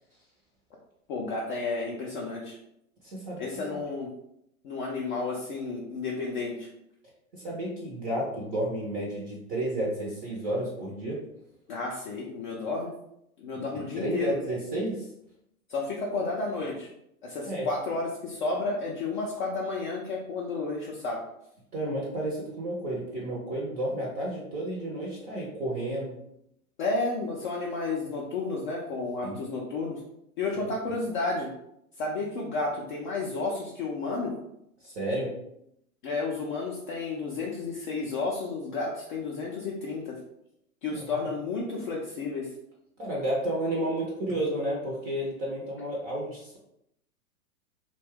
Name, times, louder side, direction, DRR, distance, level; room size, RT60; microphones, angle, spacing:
voice 1, 1.1-2.6 3.4-4.1 4.6-6.7 11.7-12.9 13.4-14.4 15.7-16.9 17.2-21.2 26.8-30.0 30.4-31.5 32.0-34.4 36.0-40.2 40.8-42.5, left 3 dB, 35° left, -3 dB, 0.4 m, -32 dB
voice 2, 3.0-3.5 7.3-11.2 13.5-13.6 14.0-15.0 17.5-17.7 21.7-26.1 29.2-29.4 34.8-35.3 40.9-41.3 43.0-46.6, right 1 dB, 20° right, -4 dB, 0.5 m, -31 dB
2.6 x 2.2 x 3.4 m, 0.78 s
hypercardioid pair, 115°, 44 cm